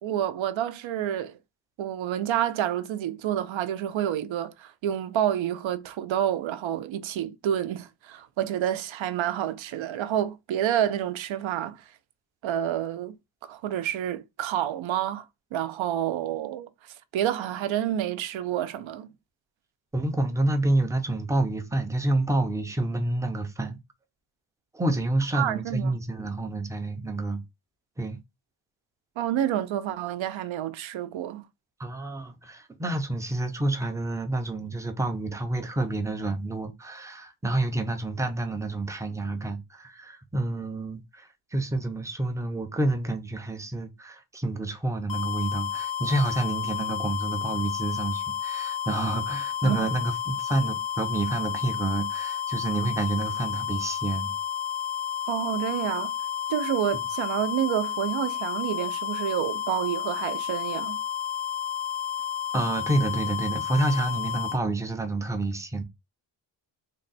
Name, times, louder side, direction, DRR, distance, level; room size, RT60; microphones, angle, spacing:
voice 1, 0.0-1.4 1.8-11.8 12.4-13.1 13.4-15.3 15.5-19.1 25.3-26.0 29.2-31.4 49.6-49.9 55.3-56.1 56.5-61.0, right 11 dB, 75° right, 0.6 m, -29 dB
voice 2, 19.9-23.8 24.7-27.4 28.0-28.2 31.8-54.3 62.5-65.8, right 2 dB, 5° right, 0.4 m, -28 dB
sound 1, 45.1-64.6, left 9 dB, 75° left, 0.8 m, -31 dB
3.6 x 2.2 x 3.9 m
wide cardioid pair, 175°, 46 cm